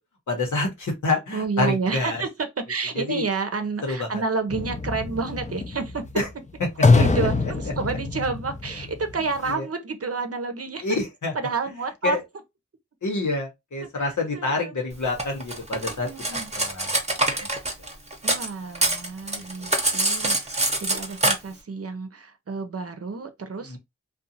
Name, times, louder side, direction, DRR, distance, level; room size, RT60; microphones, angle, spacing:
voice 1, 0.3-2.2 2.9-3.3 3.8-4.2 6.2-6.3 6.6-6.7 6.9-7.3 9.4-9.7 10.8-11.3 12.0-12.2 13.0-17.5 17.8-17.9 19.3-19.8 23.6-23.8, left 2 dB, 90° left, 1.0 m, -28 dB
voice 2, 1.3-6.1 7.0-10.8 11.4-12.2 14.3-14.7 15.8-16.5 18.2-23.8, right 4 dB, 55° right, 0.6 m, -30 dB
sound 1, 4.5-9.5, left 3 dB, 25° left, 0.4 m, -24 dB
Cutlery silverware, 15.2-18.5 18.7-21.3, right 2 dB, 20° right, 0.8 m, -24 dB
2.5 x 2.3 x 2.6 m
wide cardioid pair, 60°, 29 cm